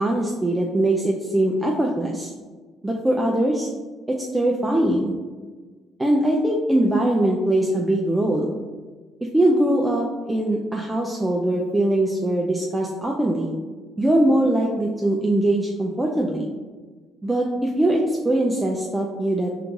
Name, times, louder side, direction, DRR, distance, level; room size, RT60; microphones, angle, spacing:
voice 1, 0.0-2.3 2.8-3.7 4.1-5.1 6.0-8.5 9.3-13.5 14.0-16.4 17.2-19.5, right 1 dB, 15° right, -1 dB, 0.5 m, -21 dB
4.5 x 3.7 x 2.5 m, 1.4 s
supercardioid pair, 70°, 0 cm